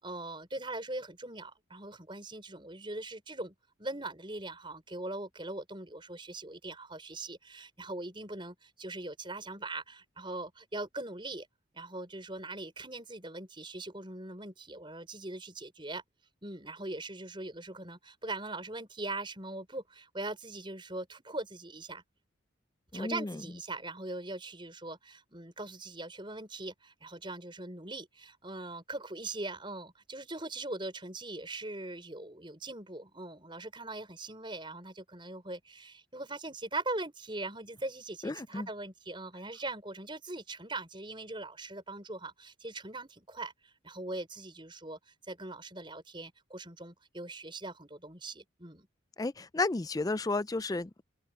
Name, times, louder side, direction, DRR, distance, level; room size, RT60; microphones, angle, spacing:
voice 1, 0.0-11.5 11.7-16.0 16.4-22.0 22.9-48.9, right 2 dB, 25° right, 5.6 m, -41 dB
voice 2, 22.9-23.4 38.2-38.7 49.2-51.0, left 3 dB, 20° left, 0.4 m, -32 dB
head